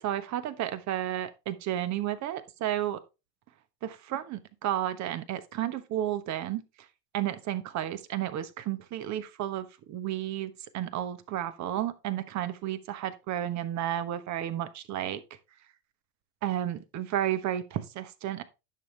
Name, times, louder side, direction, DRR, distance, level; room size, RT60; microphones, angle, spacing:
voice 1, 0.0-3.0 3.8-6.6 7.1-15.2 16.4-18.4, right 12 dB, 35° right, 1.2 m, -32 dB
11.0 x 6.5 x 3.3 m
hypercardioid pair, 100°, 47 cm